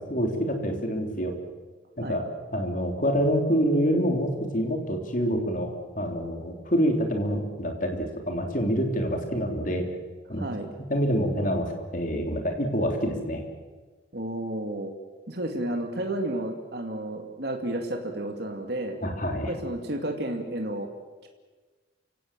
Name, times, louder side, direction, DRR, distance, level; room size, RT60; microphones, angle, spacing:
voice 1, 0.1-1.3 2.0-2.2 2.5-9.9 10.3-10.5 10.9-13.4 19.0-19.5, equal, 45° left, 3 dB, 3.5 m, -26 dB
voice 2, 10.4-10.7 14.1-14.9 15.3-19.0 19.5-20.9 21.2-21.3, right 1 dB, 55° right, 3 dB, 2.4 m, -31 dB
29.0 x 17.0 x 7.6 m, 1.3 s
head